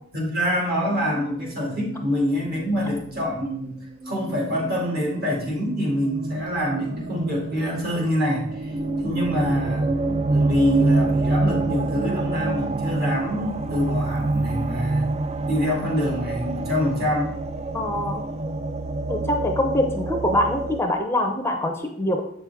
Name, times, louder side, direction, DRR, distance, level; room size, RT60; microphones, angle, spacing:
voice 1, 0.1-3.8 4.0-8.7 9.0-9.9 10.3-15.0 15.5-17.3, equal, 50° right, -2 dB, 2.3 m, -25 dB
sound 1, 0.9-20.8, right 2 dB, 30° right, 0.3 m, -27 dB
voice 2, 17.7-18.3 19.1-22.2, left 1 dB, 10° left, 3 dB, 0.6 m, -24 dB
7.9 x 6.1 x 3.4 m, 0.69 s
head